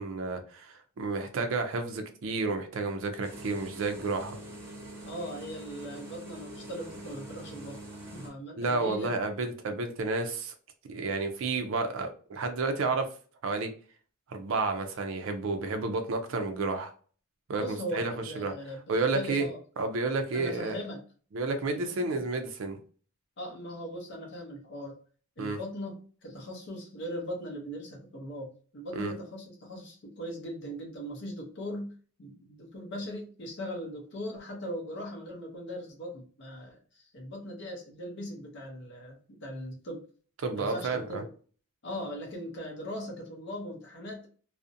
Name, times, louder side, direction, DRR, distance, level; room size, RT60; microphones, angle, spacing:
voice 1, 0.0-4.4 8.6-10.5 10.9-13.1 13.4-13.7 14.3-16.9 17.5-18.5 18.9-19.5 19.8-20.8 21.3-22.8 25.4-25.6 29.0-29.1 40.4-41.2, right 3 dB, 60° right, 6 dB, 0.4 m, -31 dB
sound 1, 3.2-8.3, right 1 dB, 10° right, 0.8 m, -44 dB
voice 2, 5.0-7.8 8.1-9.1 17.5-18.8 19.1-19.6 20.3-21.0 21.7-22.2 23.4-25.0 25.4-40.1 40.6-41.3 41.8-44.3, equal, 55° left, 1 dB, 0.6 m, -39 dB
2.5 x 2.0 x 2.5 m, 0.41 s
head